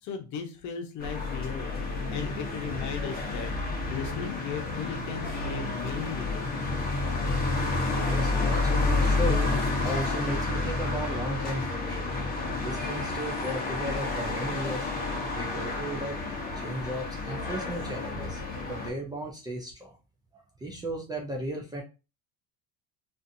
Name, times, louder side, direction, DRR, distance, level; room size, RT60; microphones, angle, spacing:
voice 1, 0.0-6.6, left 6 dB, 55° left, 4 dB, 0.8 m, -37 dB
sound 1, 1.0-18.9, left 3 dB, 25° left, 0.9 m, -30 dB
voice 2, 8.0-12.1 12.6-14.9 15.3-16.2 16.5-18.4 18.7-20.0 20.3-21.8, right 1 dB, 10° right, 0 dB, 0.4 m, -35 dB
2.6 x 2.5 x 2.5 m, 0.30 s
cardioid pair, 130°, 35 cm